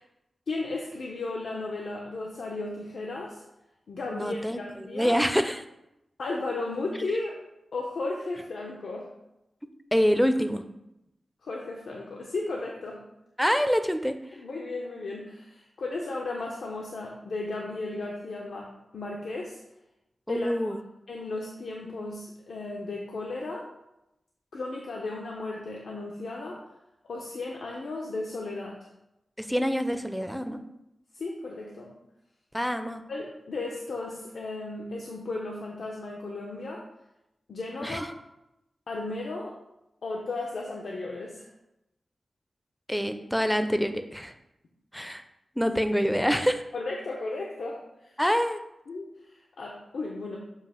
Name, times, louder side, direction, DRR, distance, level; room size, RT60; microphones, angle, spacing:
voice 1, 0.5-3.4 3.9-5.2 6.2-7.3 7.7-9.1 11.4-13.0 14.4-18.7 18.9-19.6 20.3-20.7 21.1-23.7 24.5-26.6 27.1-28.8 31.1-31.9 33.1-36.8 37.5-38.1 38.9-39.6 40.0-41.5 46.7-48.2 48.9-50.4, left 2 dB, 80° left, -1 dB, 0.8 m, -35 dB
voice 2, 4.1-5.6 9.9-10.6 13.4-14.1 20.3-20.8 29.4-30.6 32.5-33.0 37.8-38.1 42.9-44.3 44.9-45.2 45.6-46.6 48.2-48.6, equal, ahead, 8 dB, 0.5 m, -26 dB
7.4 x 2.8 x 5.7 m, 0.87 s
wide cardioid pair, 125°, 0 cm